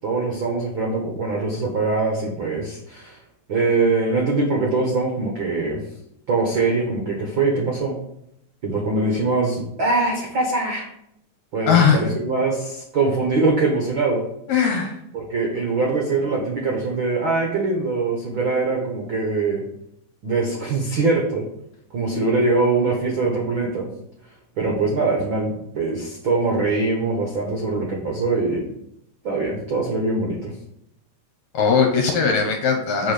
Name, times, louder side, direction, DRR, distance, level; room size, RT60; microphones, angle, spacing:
voice 1, 0.0-3.2 3.5-5.8 6.3-8.0 8.6-10.9 11.5-14.2 15.1-19.6 20.2-21.4 21.9-23.9 24.6-28.7 29.2-30.5, right 3 dB, 65° right, 0 dB, 1.2 m, -22 dB
voice 2, 11.7-12.0 14.5-15.0 31.5-33.1, left 6 dB, 65° left, 2 dB, 2.0 m, -19 dB
7.4 x 4.7 x 6.6 m, 0.76 s
omnidirectional pair, 4.1 m